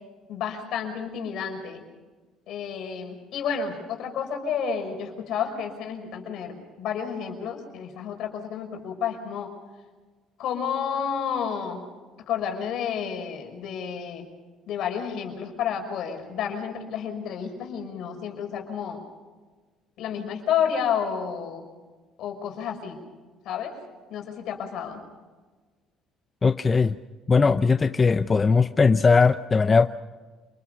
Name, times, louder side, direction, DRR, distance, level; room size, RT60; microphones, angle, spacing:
voice 1, 0.3-1.8 2.5-9.5 10.4-11.8 12.3-14.3 14.7-19.0 20.0-21.7 22.2-23.0 23.4-23.7 24.1-25.0, left 7 dB, 70° left, 4 dB, 5.6 m, -30 dB
voice 2, 26.4-27.0 27.3-29.9, left 4 dB, 25° left, 10 dB, 0.7 m, -19 dB
28.0 x 21.0 x 5.8 m, 1.3 s
cardioid pair, 100°, 0 cm